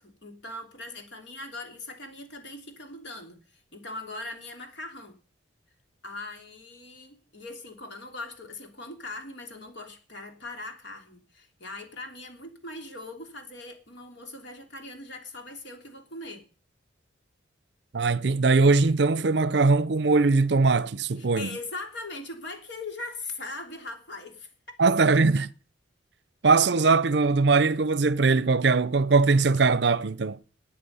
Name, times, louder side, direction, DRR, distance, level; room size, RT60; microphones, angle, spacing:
voice 1, 0.0-3.4 3.7-5.2 6.0-16.4 21.2-24.5, left 2 dB, 65° left, 3.1 m, -40 dB
voice 2, 17.9-21.5 24.8-25.5 26.4-30.4, right 4 dB, 60° right, 0.6 m, -21 dB
19.5 x 8.5 x 5.5 m
head